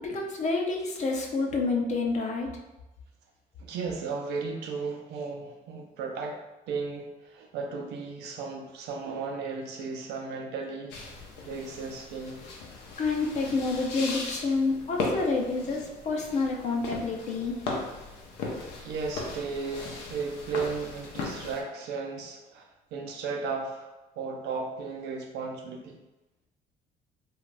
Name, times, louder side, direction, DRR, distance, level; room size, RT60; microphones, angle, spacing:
voice 1, 0.0-2.5 13.0-17.6, left 3 dB, 45° left, 1 dB, 0.5 m, -28 dB
voice 2, 3.6-6.4 6.7-10.9 11.5-12.4 18.8-23.9 24.2-26.0, right 4 dB, 80° right, 2 dB, 0.5 m, -35 dB
sound 1, 10.9-21.6, left 3 dB, 85° left, 0.6 m, -38 dB
2.5 x 2.4 x 3.2 m, 1.0 s
cardioid pair, 110°, 17 cm